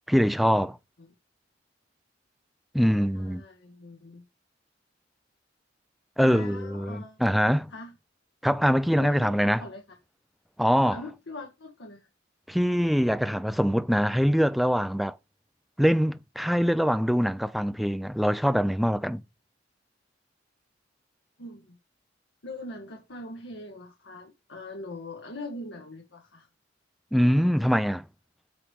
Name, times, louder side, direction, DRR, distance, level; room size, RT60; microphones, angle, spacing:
voice 1, 0.1-0.8 2.7-3.4 6.2-7.7 8.4-9.6 10.6-11.0 12.5-15.2 15.8-19.2 27.1-28.0, equal, ahead, 0.4 m, -23 dB
voice 2, 3.1-4.2 6.2-7.2 7.7-8.0 9.0-9.8 10.9-12.1 21.4-21.8 22.4-26.5, left 2 dB, 70° left, 1.4 m, -42 dB
8.7 x 3.3 x 6.1 m
head